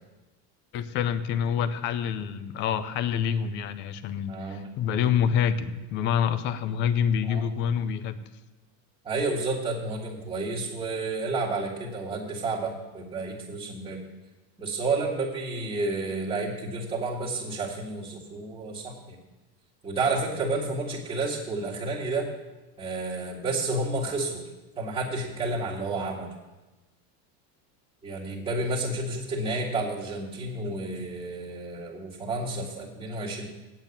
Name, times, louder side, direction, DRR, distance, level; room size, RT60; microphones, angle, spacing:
voice 1, 0.7-8.2, left 8 dB, 25° left, 13 dB, 0.3 m, -27 dB
voice 2, 4.3-4.7 7.2-7.5 9.0-14.0 14.6-19.2 19.8-22.3 22.8-24.5 24.8-26.3 28.0-33.4, right 3 dB, 10° right, -8 dB, 1.9 m, -30 dB
8.9 x 8.1 x 8.3 m, 1.1 s
supercardioid pair, 150°, 48 cm